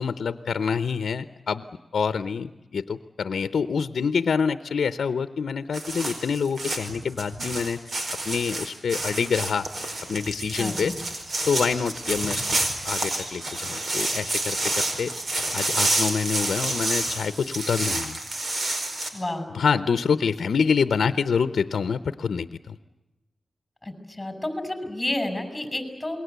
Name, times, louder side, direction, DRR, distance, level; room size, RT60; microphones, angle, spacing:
voice 1, 0.0-1.7 1.9-7.8 8.3-9.7 10.1-10.9 11.4-12.6 12.8-15.1 15.5-18.2 19.5-22.8, left 6 dB, 85° left, 12 dB, 0.8 m, -26 dB
sound 1, 5.7-19.1, right 2 dB, 60° right, 4.8 m, -29 dB
voice 2, 10.6-11.0 19.1-19.5 23.8-26.2, left 1 dB, 15° left, 8 dB, 6.0 m, -30 dB
28.0 x 21.5 x 8.2 m, 1.0 s
wide cardioid pair, 75°, 0 cm